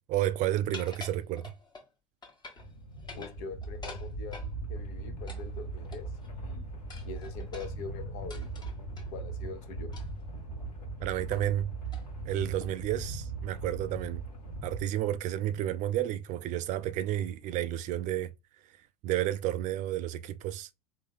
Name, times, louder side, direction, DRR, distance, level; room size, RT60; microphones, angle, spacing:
voice 1, 0.0-1.5 11.0-11.7 12.2-14.2 14.6-18.3 19.0-20.7, right 12 dB, 40° right, 0.4 m, -31 dB
sound 1, 0.7-1.9 2.2-2.7 3.0-4.5 5.3-6.3 6.9-9.1 9.9-10.2 10.6-10.7 11.3-11.6 11.9-12.1 12.6-12.9, left 3 dB, 20° left, 1.2 m, -47 dB
sound 2, 2.6-14.8, right 2 dB, 85° left, 1.5 m, -39 dB
voice 2, 3.1-6.7 7.0-8.5 9.1-9.9, left 4 dB, 55° left, 1.0 m, -43 dB
3.7 x 2.7 x 3.5 m
hypercardioid pair, 80°, 20 cm